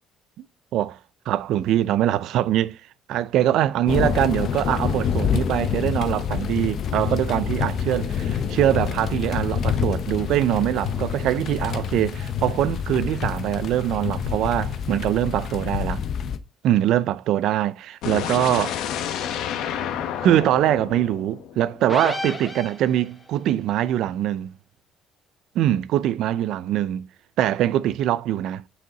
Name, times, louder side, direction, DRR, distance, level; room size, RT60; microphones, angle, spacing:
voice 1, 1.3-2.8 3.1-16.0 16.6-18.8 20.1-24.5 25.5-27.1 27.4-28.6, right 12 dB, 65° right, 0.5 m, -23 dB
sound 1, 3.9-16.4, left 7 dB, 45° left, 0.7 m, -27 dB
sound 2, 18.0-22.0, left 9 dB, 70° left, 1.0 m, -30 dB
sound 3, 21.9-23.3, left 1 dB, 10° left, 1.2 m, -31 dB
9.2 x 4.8 x 3.9 m
cardioid pair, 150°, 0 cm